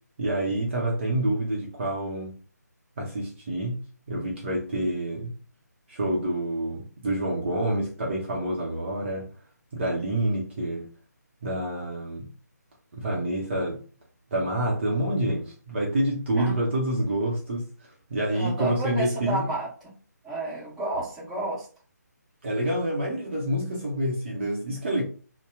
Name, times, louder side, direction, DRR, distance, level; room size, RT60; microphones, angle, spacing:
voice 1, 0.2-2.3 3.0-3.8 4.1-5.3 5.9-9.3 9.7-10.9 11.4-12.3 12.9-13.8 14.3-17.7 18.1-19.5 22.4-25.0, right 1 dB, 40° right, 0.8 m, -27 dB
voice 2, 16.4-16.7 18.3-19.9 20.2-21.7, right 2 dB, ahead, 1.2 m, -31 dB
2.7 x 2.2 x 3.4 m
figure-of-eight pair, 145°, 10 cm